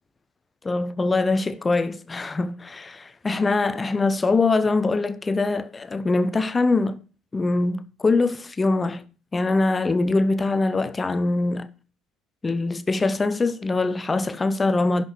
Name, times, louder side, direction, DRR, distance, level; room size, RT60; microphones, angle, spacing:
voice 1, 0.6-7.0 7.3-9.0 9.3-11.7 12.4-15.0, left 3 dB, 20° left, 0.7 m, -23 dB
11.0 x 6.1 x 4.4 m
hypercardioid pair, 60°, 0 cm